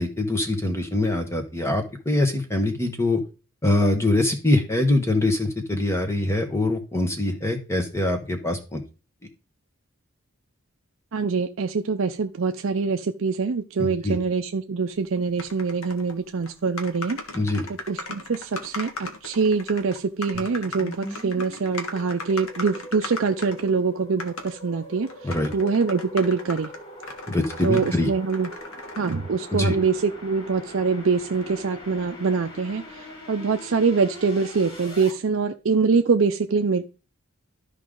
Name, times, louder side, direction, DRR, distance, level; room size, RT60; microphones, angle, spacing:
voice 1, 0.0-3.2 3.6-8.8 13.8-14.2 17.3-17.7 25.2-25.5 27.3-28.1 29.5-29.7, left 1 dB, 10° left, 5 dB, 1.3 m, -23 dB
voice 2, 11.1-17.2 17.7-26.7 27.6-28.5 29.0-36.9, right 5 dB, 60° right, 6 dB, 0.5 m, -24 dB
sound 1, 15.4-16.2 16.4-16.5 16.8-23.7 24.2-24.5 25.1-27.9 28.3-29.1, left 3 dB, 75° left, 1.5 m, -37 dB
sound 2, 20.3-35.1, left 1 dB, 45° left, 3.5 m, -42 dB
12.5 x 5.0 x 3.8 m, 0.33 s
head